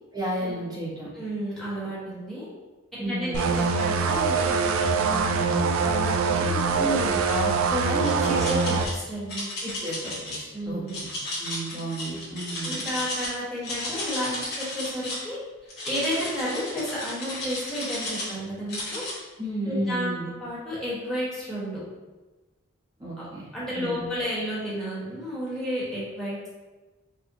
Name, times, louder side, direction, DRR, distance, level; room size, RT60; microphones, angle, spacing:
voice 1, 0.1-1.1 3.0-3.4 6.7-8.4 8.7-8.8 9.6-10.8 11.4-12.8 19.4-20.3 23.0-23.5 23.7-24.1, right 1 dB, 20° right, -6 dB, 0.8 m, -32 dB
voice 2, 1.1-2.5 2.9-6.9 8.1-9.5 10.5-11.0 11.7-12.1 12.6-15.4 15.8-19.0 19.7-21.8 23.5-26.5, equal, ahead, -9 dB, 1.0 m, -32 dB
sound 1, 3.3-8.9, right 5 dB, 90° right, 0.3 m, -24 dB
sound 2, 7.8-8.9 9.3-10.4 10.9-13.3 13.6-15.2 15.7-18.3 18.7-19.1, left 1 dB, 50° left, 1.1 m, -34 dB
4.5 x 2.1 x 2.8 m, 1.2 s
head